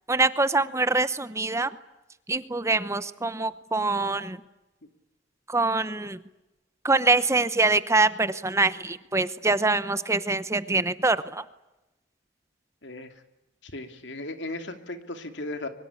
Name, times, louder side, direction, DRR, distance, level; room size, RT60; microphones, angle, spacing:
voice 1, 0.1-1.7 2.3-4.4 5.5-6.2 6.8-11.4, right 3 dB, 15° right, 14 dB, 0.8 m, -24 dB
voice 2, 12.8-13.1 13.6-15.7, left 2 dB, 70° left, 7 dB, 2.8 m, -36 dB
24.0 x 23.0 x 8.6 m, 0.99 s
head